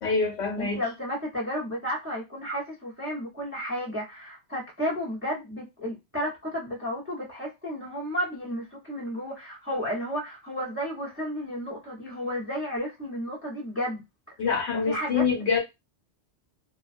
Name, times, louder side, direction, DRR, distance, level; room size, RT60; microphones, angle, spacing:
voice 1, 0.0-0.8 14.4-15.6, left 5 dB, 85° left, 1.1 m, -25 dB
voice 2, 0.6-14.0 14.7-15.2, equal, 15° right, 0.6 m, -32 dB
2.4 x 2.2 x 2.5 m
omnidirectional pair, 1.2 m